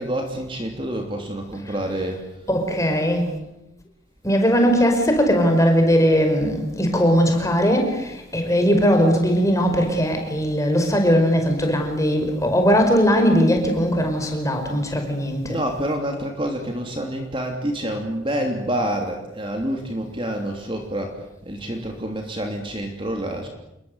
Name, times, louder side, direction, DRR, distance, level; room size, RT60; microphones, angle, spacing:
voice 1, 0.0-2.3 15.4-23.5, right 1 dB, 25° right, 3 dB, 3.0 m, -27 dB
voice 2, 2.5-3.3 4.2-15.6, equal, 15° left, 4 dB, 5.2 m, -19 dB
28.0 x 22.0 x 8.1 m, 0.88 s
head